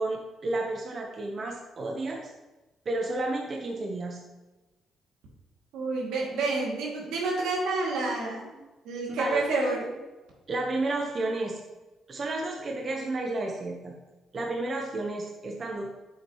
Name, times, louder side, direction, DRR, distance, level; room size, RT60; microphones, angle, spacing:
voice 1, 0.0-2.3 2.8-4.2 9.1-9.4 10.5-11.6 12.1-14.0 14.3-15.9, right 2 dB, 40° right, 0 dB, 1.1 m, -31 dB
voice 2, 5.7-8.6 8.8-9.9, right 3 dB, 90° right, -3 dB, 2.6 m, -29 dB
9.2 x 7.3 x 3.2 m, 1.1 s
cardioid pair, 90°, 0 cm